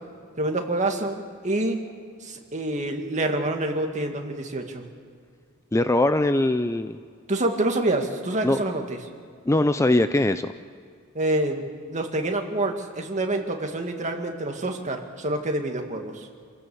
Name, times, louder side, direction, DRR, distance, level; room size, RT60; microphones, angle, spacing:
voice 1, 0.4-1.2 1.4-1.8 2.2-4.9 7.3-9.0 11.1-11.6 11.9-16.3, right 2 dB, 35° right, 3 dB, 2.1 m, -27 dB
voice 2, 5.7-7.0 8.4-8.6 9.5-10.5, left 1 dB, 15° left, 10 dB, 0.5 m, -21 dB
27.5 x 16.5 x 7.1 m, 2.2 s
head